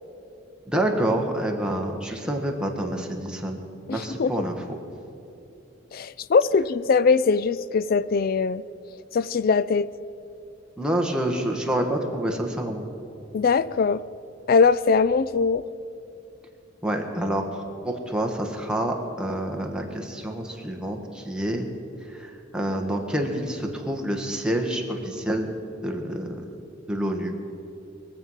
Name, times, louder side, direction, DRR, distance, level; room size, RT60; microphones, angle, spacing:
voice 1, 0.7-3.6 3.9-4.8 10.8-12.8 16.8-21.7 22.1-25.5 25.8-26.5 26.9-27.3, right 1 dB, 5° right, 1 dB, 1.3 m, -27 dB
voice 2, 3.9-4.3 5.9-8.6 9.1-9.9 13.3-14.0 14.5-15.6, left 5 dB, 50° left, 17 dB, 0.4 m, -21 dB
22.5 x 7.7 x 5.6 m, 2.8 s
head